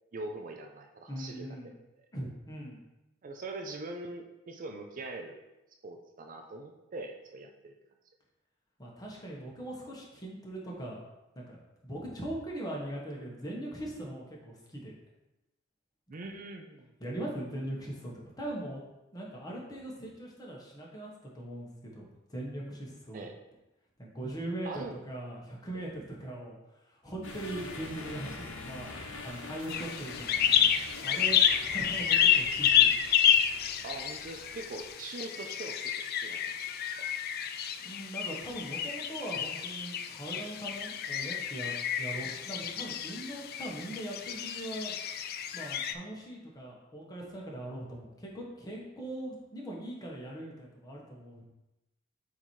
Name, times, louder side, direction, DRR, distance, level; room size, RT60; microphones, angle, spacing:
voice 1, 0.1-1.7 3.2-5.4 5.8-7.7 16.1-16.9 23.1-23.4 24.6-24.9 25.7-25.9 33.8-36.6 37.0-37.1, right 2 dB, 40° right, 3 dB, 0.5 m, -42 dB
voice 2, 1.1-1.7 2.1-2.8 8.8-11.0 11.3-11.6 11.8-14.9 17.0-18.8 19.1-22.0 22.3-23.2 24.0-26.6 26.9-33.0 37.8-45.0 45.5-51.5, right 1 dB, 20° left, -3 dB, 1.2 m, -40 dB
sound 1, 27.2-34.9, left 3 dB, 70° left, 0.9 m, -45 dB
sound 2, 29.7-45.9, left 9 dB, 50° left, 0.3 m, -29 dB
7.5 x 2.9 x 4.6 m, 0.97 s
head